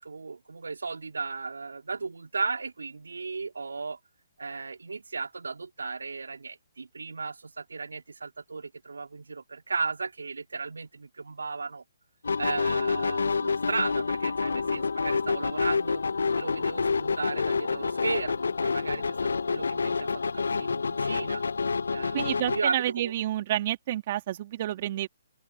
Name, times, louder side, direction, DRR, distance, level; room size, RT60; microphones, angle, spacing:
voice 1, 0.0-4.0 4.4-11.8 12.4-16.0 16.3-21.4 21.9-23.1, right 4 dB, 75° right, 4.7 m, -35 dB
sound 1, 12.2-22.6, left 4 dB, 75° left, 1.9 m, -28 dB
voice 2, 22.1-25.1, right 13 dB, 40° right, 3.4 m, -29 dB
open air
figure-of-eight pair, 135°, 0 cm